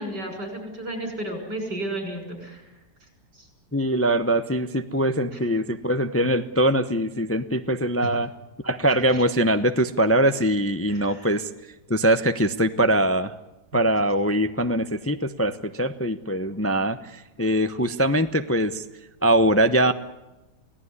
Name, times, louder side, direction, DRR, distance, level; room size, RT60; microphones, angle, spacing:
voice 1, 0.0-2.7 3.3-3.5 5.3-5.4 8.0-8.1 9.1-9.2 10.9-11.3, right 1 dB, 90° right, 4 dB, 7.1 m, -33 dB
voice 2, 3.7-8.3 8.6-11.5 11.9-13.3 13.7-18.8 19.2-19.9, right 1 dB, 15° left, 9 dB, 0.5 m, -22 dB
28.5 x 17.5 x 9.8 m, 1.0 s
omnidirectional pair, 1.8 m